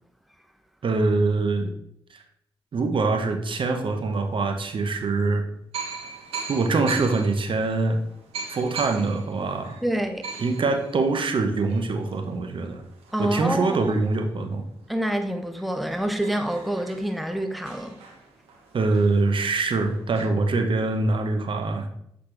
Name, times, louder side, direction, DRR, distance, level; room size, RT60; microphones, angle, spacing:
voice 1, 0.8-1.7 2.1-2.2 2.7-5.4 6.5-8.0 8.5-9.7 10.4-12.8 13.2-14.6 18.7-21.9, right 3 dB, 60° right, 0.9 m, -24 dB
sound 1, 4.0-4.1 5.0-5.1 5.7-14.9 15.3-15.4 15.6-20.2, right 5 dB, 90° right, 1.0 m, -41 dB
voice 2, 9.8-10.2 13.1-13.7 14.9-17.9, right 1 dB, ahead, 0.7 m, -27 dB
7.6 x 4.1 x 3.3 m
supercardioid pair, 45°, 10 cm